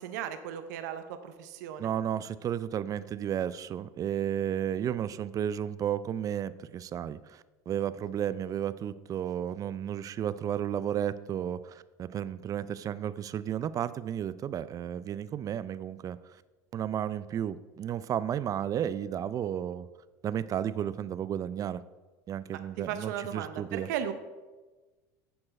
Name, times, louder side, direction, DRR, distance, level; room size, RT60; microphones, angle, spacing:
voice 1, 0.0-1.9 22.8-24.1, right 9 dB, 80° right, 9 dB, 0.7 m, -36 dB
voice 2, 1.8-16.4 16.7-19.9 20.2-21.8 22.3-23.9, right 10 dB, 40° right, 15 dB, 0.4 m, -33 dB
11.0 x 4.5 x 4.3 m, 1.2 s
hypercardioid pair, 90°, 9 cm